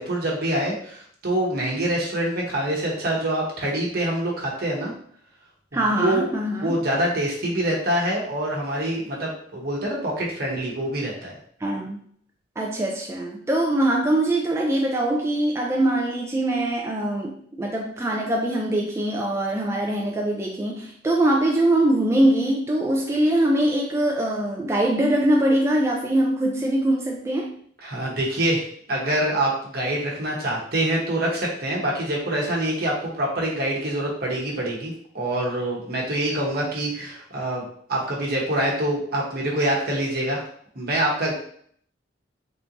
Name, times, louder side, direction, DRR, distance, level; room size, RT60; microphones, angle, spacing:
voice 1, 0.0-4.9 5.7-6.3 6.6-11.3 27.8-28.6 28.9-40.4 40.7-41.3, right 1 dB, 60° right, -3 dB, 1.0 m, -25 dB
voice 2, 5.7-6.8 11.6-12.0 12.6-27.6, right 1 dB, 15° right, -1 dB, 0.3 m, -22 dB
3.5 x 2.6 x 2.8 m, 0.62 s
head